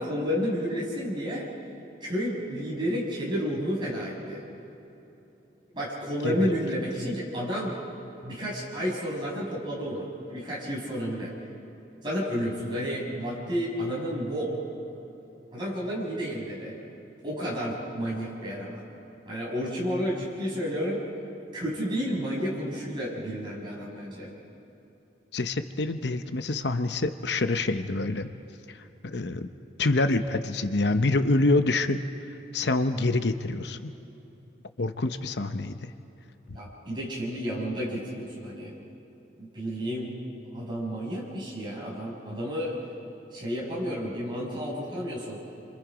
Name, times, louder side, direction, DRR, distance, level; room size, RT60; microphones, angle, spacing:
voice 1, 0.0-1.5 2.0-4.4 5.7-7.8 8.2-11.3 12.0-14.5 15.5-16.7 17.2-18.8 19.2-21.0 21.5-24.3 36.5-38.7 39.4-40.1 40.5-42.7 43.3-45.4, equal, 25° right, -4 dB, 6.6 m, -31 dB
voice 2, 25.3-28.3 29.0-29.5 29.8-32.0 32.5-33.9 34.8-35.9, left 2 dB, 75° left, 9 dB, 0.9 m, -26 dB
29.0 x 25.5 x 5.1 m, 2.9 s
head